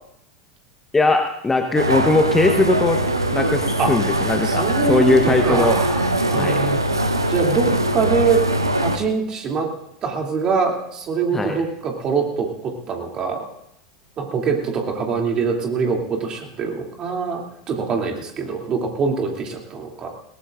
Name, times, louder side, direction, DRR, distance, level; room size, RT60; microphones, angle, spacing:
voice 1, 0.9-3.0 3.3-5.8 6.3-6.6 7.7-7.8 11.3-11.6, left 2 dB, 15° left, 5 dB, 1.0 m, -19 dB
sound 1, 1.8-9.0, right 1 dB, 85° right, 0.9 m, -21 dB
voice 2, 4.4-6.8 7.3-8.4 8.8-9.7 10.0-13.5 14.2-20.1, right 5 dB, 35° right, 1 dB, 2.8 m, -24 dB
20.5 x 18.0 x 2.5 m, 0.77 s
figure-of-eight pair, 80°, 2 cm